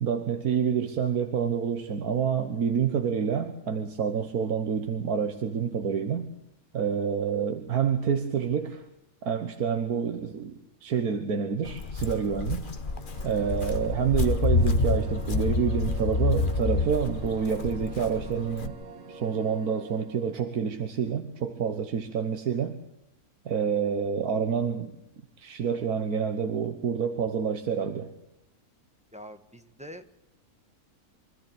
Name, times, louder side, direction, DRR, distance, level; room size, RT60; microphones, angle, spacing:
voice 1, 0.0-6.3 6.7-8.8 9.2-12.7 13.2-18.7 19.1-22.7 23.4-24.9 25.4-28.1, right 7 dB, 85° right, 7 dB, 1.7 m, -28 dB
Walk footsteps, 11.6-18.7, left 3 dB, 40° left, 1.2 m, -28 dB
Really cool smooth pad synth, 12.7-20.5, right 4 dB, 60° right, 1.9 m, -46 dB
voice 2, 29.1-30.1, equal, 5° right, 7 dB, 1.1 m, -44 dB
25.0 x 13.5 x 8.5 m, 0.82 s
omnidirectional pair, 1.6 m